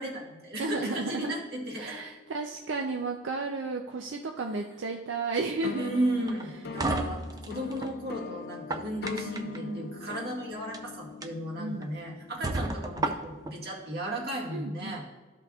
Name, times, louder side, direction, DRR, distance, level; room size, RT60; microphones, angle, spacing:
voice 1, 0.0-1.9 5.8-15.0, right 1 dB, 55° right, -2 dB, 1.9 m, -35 dB
voice 2, 0.6-1.3 1.8-6.0 6.8-7.1 9.1-9.9 11.6-11.9 14.5-15.0, right 3 dB, 85° right, 2 dB, 0.5 m, -34 dB
sound 1, 0.7-4.0 5.6-14.2, left 4 dB, 55° left, 0.4 m, -43 dB
sound 2, 6.3-7.9 8.5-9.6 10.6-10.8 11.2-11.3 11.8-11.9 12.4-13.5, right 2 dB, 20° right, 0.4 m, -32 dB
13.0 x 5.7 x 2.4 m, 1.3 s
head